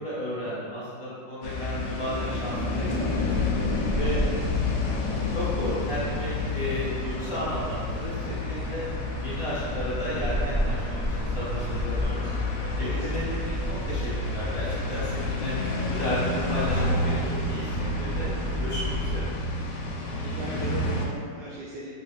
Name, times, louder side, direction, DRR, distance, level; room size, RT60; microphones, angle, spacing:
voice 1, 0.0-3.4 4.0-4.2 5.3-8.9 9.2-12.3 12.8-13.6 13.9-15.5 15.9-18.3 18.6-19.3, left 1 dB, 20° left, -11 dB, 0.8 m, -33 dB
sound 1, 1.4-21.1, left 3 dB, 75° left, 1.1 m, -31 dB
sound 2, 3.3-19.3, equal, 15° right, 1.1 m, -32 dB
voice 2, 12.7-13.2 20.2-21.9, right 1 dB, 80° right, -6 dB, 0.9 m, -39 dB
3.1 x 3.1 x 3.3 m, 2.1 s
omnidirectional pair, 2.2 m